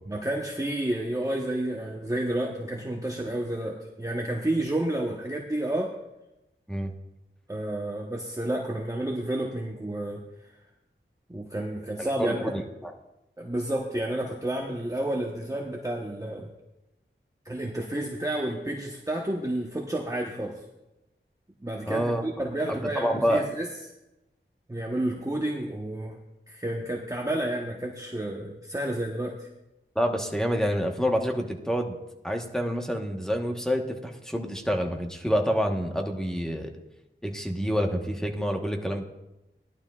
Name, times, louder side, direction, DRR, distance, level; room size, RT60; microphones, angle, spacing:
voice 1, 0.1-5.9 7.5-10.2 11.3-12.5 13.4-16.5 17.4-20.6 21.6-23.7 24.7-26.2 26.5-29.5, right 1 dB, 15° right, -1 dB, 1.1 m, -30 dB
voice 2, 12.0-12.9 21.9-22.2 22.7-23.4 29.9-32.0 32.2-36.7 37.2-39.0, equal, 5° left, 3 dB, 1.2 m, -27 dB
16.5 x 11.5 x 2.4 m, 0.94 s
wide cardioid pair, 65°, 21 cm